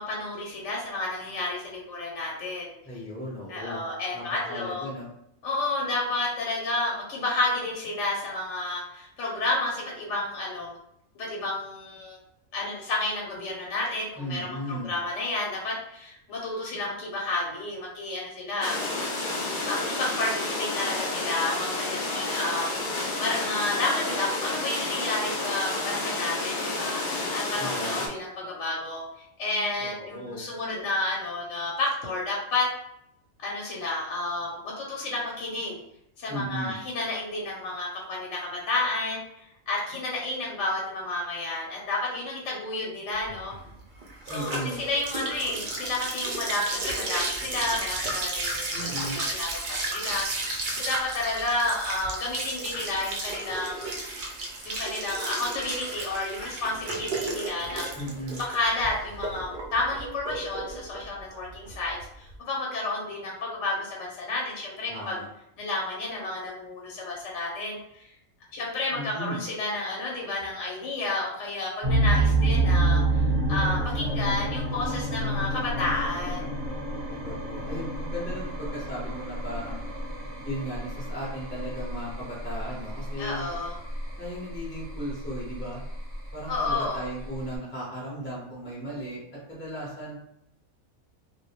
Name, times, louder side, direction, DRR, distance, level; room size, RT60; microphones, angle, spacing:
voice 1, 0.0-2.7 3.5-4.9 5.4-10.7 11.2-12.2 12.5-19.2 19.7-22.7 23.2-29.0 29.4-32.7 33.4-35.8 36.2-43.5 44.3-53.9 54.6-57.9 58.4-65.2 65.6-68.1 68.5-73.2 73.5-76.5 83.2-83.7 86.5-87.0, left 2 dB, 65° left, -3 dB, 0.9 m, -31 dB
voice 2, 2.8-3.8 4.1-5.1 14.2-14.9 27.6-28.1 29.8-30.5 36.3-36.8 44.3-44.8 48.7-49.2 57.9-58.4 64.9-65.3 68.9-69.4 73.2-73.8 77.2-79.8 80.4-83.5 84.2-85.8 86.3-89.2 89.5-90.2, equal, 15° left, -6 dB, 0.5 m, -36 dB
sound 1, 18.6-28.1, left 2 dB, 85° left, 0.4 m, -30 dB
sound 2, 43.3-62.3, right 2 dB, 70° right, 0.4 m, -33 dB
sound 3, 71.8-87.6, right 2 dB, 35° right, 0.7 m, -29 dB
2.2 x 2.1 x 2.9 m, 0.78 s
omnidirectional pair, 1.4 m